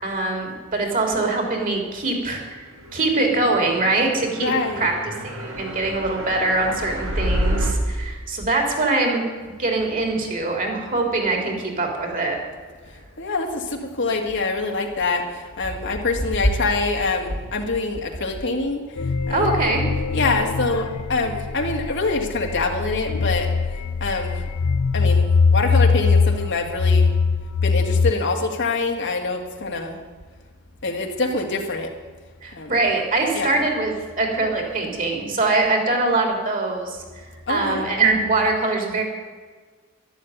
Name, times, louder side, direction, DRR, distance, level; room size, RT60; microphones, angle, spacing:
voice 1, 0.0-2.6 2.9-9.2 9.6-12.4 19.3-19.8 32.4-33.9 34.2-37.0 37.5-39.0, right 3 dB, 40° right, 3 dB, 3.6 m, -23 dB
sound 1, 3.3-7.7, equal, 60° right, 3.5 m, -28 dB
voice 2, 4.4-4.9 13.2-18.8 19.3-19.5 20.1-23.5 24.0-24.4 24.9-27.1 27.6-30.0 30.8-31.9 32.5-32.7 33.3-33.6 37.5-37.9, left 3 dB, 55° left, 3 dB, 1.9 m, -25 dB
sound 2, 19.0-28.1, left 4 dB, 85° left, 0.6 m, -21 dB
12.5 x 12.0 x 9.3 m, 1.5 s
head